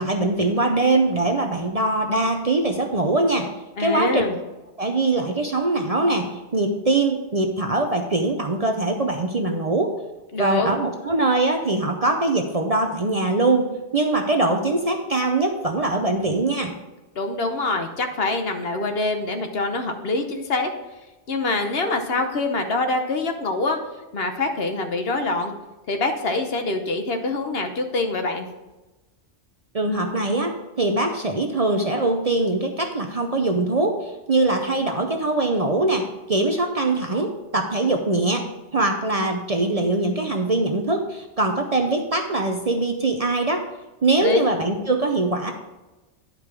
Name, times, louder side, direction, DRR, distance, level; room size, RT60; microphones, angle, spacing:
voice 1, 0.0-3.5 3.8-4.3 4.8-10.0 10.4-16.7 29.7-38.4 38.7-43.6 44.0-45.5, right 2 dB, 40° right, 4 dB, 0.7 m, -22 dB
voice 2, 3.8-4.4 10.3-10.7 17.2-20.7 21.3-23.8 24.1-25.5 25.9-28.5 44.2-44.4, left 3 dB, 60° left, 5 dB, 1.1 m, -25 dB
10.5 x 5.2 x 4.7 m, 1.1 s
omnidirectional pair, 1.2 m